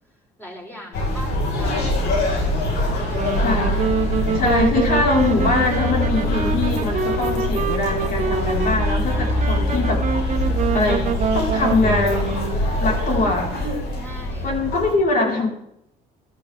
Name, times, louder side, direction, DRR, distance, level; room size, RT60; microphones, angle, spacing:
voice 1, 0.4-2.6 3.0-3.4 9.0-9.6 13.0-13.3 14.0-14.5, equal, 10° left, -1 dB, 4.5 m, -41 dB
sound 1, 0.9-14.9, left 1 dB, 75° left, 5.2 m, -23 dB
Wind instrument woodwind instrument, 3.0-12.7, right 5 dB, 45° right, 1.6 m, -26 dB
voice 2, 3.4-3.9 4.3-10.0 10.7-12.4 12.8-13.5 14.4-15.5, left 3 dB, 55° left, 0 dB, 4.9 m, -22 dB
14.0 x 12.5 x 3.7 m, 0.77 s
cardioid pair, 110°, 17 cm